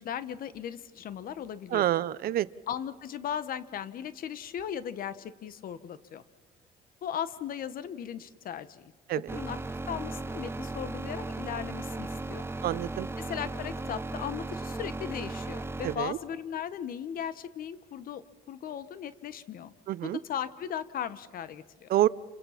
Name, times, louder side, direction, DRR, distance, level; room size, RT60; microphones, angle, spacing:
voice 1, 0.0-1.9 2.7-6.2 7.0-9.6 9.8-12.5 13.2-19.7 20.0-21.9, left 9 dB, 60° left, 15 dB, 1.2 m, -37 dB
voice 2, 1.7-2.5 9.1-9.2 12.6-13.1 15.8-16.2 19.9-20.2 21.9-22.1, right 13 dB, 60° right, 18 dB, 0.7 m, -27 dB
sound 1, 9.3-16.0, right 2 dB, 15° right, 1.0 m, -36 dB
28.5 x 26.0 x 5.8 m, 1.4 s
cardioid pair, 110°, 17 cm